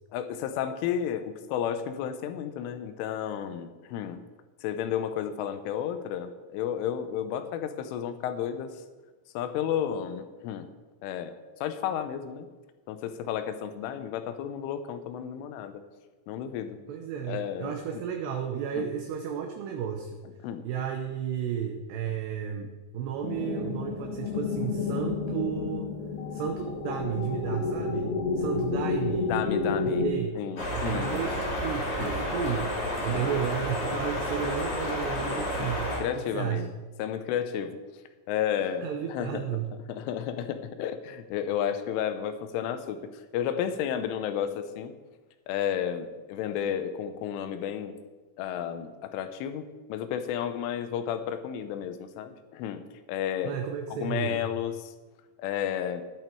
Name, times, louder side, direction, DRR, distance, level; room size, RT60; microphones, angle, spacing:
voice 1, 0.1-4.2 4.6-8.7 9.3-10.7 11.0-11.4 11.6-12.5 12.9-15.8 16.3-16.8 17.3-17.8 18.8-18.9 20.4-20.7 28.8-28.9 29.2-30.1 30.4-31.2 32.0-32.1 33.1-33.4 35.6-35.7 36.0-36.7 37.0-37.8 38.3-39.4 39.9-43.0 43.3-44.9 45.5-47.9 48.4-52.8 53.1-53.6 53.9-54.9 55.4-56.0, left 9 dB, 85° left, 9 dB, 3.3 m, -32 dB
voice 2, 16.9-20.2 20.6-25.9 26.3-29.3 29.8-30.3 30.7-32.7 33.0-36.0 36.3-36.7 38.8-39.7 53.4-54.4, right 8 dB, 75° right, 4 dB, 2.7 m, -33 dB
sound 1, 23.2-30.1, left 4 dB, 65° left, 3.1 m, -30 dB
sound 2, 30.6-36.0, left 1 dB, 35° left, 3.0 m, -31 dB
11.5 x 10.5 x 4.6 m, 1.3 s
omnidirectional pair, 5.6 m